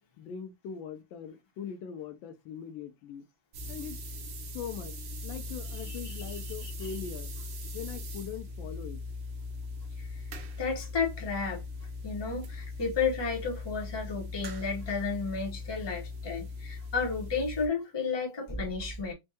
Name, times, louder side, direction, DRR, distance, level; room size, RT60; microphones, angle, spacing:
voice 1, 0.2-3.2 3.7-4.0 4.5-5.0 5.2-7.5 7.7-9.0, left 8 dB, 80° left, 1.3 m, -41 dB
sound 1, 3.5-17.7, left 2 dB, 60° right, 1.0 m, -40 dB
voice 2, 10.6-11.6 12.0-19.1, left 5 dB, 20° left, 0.7 m, -32 dB
4.4 x 2.2 x 2.8 m
omnidirectional pair, 2.1 m